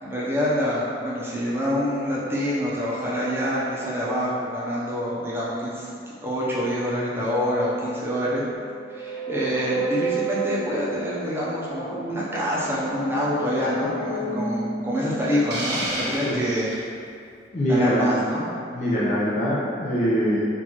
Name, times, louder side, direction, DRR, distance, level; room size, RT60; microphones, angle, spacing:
voice 1, 0.0-5.9 6.2-8.4 8.9-16.7 17.7-18.4, equal, 15° right, -7 dB, 0.8 m, -26 dB
sound 1, 8.5-16.3, right 2 dB, 85° left, 1.3 m, -33 dB
Hiss, 15.5-16.9, right 1 dB, 65° right, 0.9 m, -30 dB
voice 2, 16.2-16.6 17.5-18.0 18.7-20.4, equal, 40° left, -8 dB, 0.7 m, -23 dB
5.9 x 2.6 x 3.0 m, 2.3 s
head